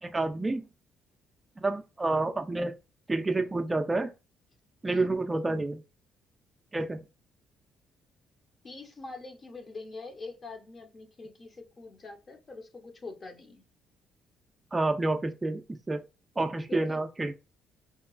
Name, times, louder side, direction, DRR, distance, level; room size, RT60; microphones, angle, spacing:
voice 1, 0.0-0.6 1.6-2.8 3.1-4.1 4.8-5.8 6.7-7.0 14.7-16.0 16.4-17.3, right 2 dB, 20° right, 0.3 m, -29 dB
voice 2, 8.6-13.6 16.7-17.0, left 3 dB, 40° left, 0.7 m, -44 dB
2.9 x 2.2 x 2.4 m
supercardioid pair, 70°, 0 cm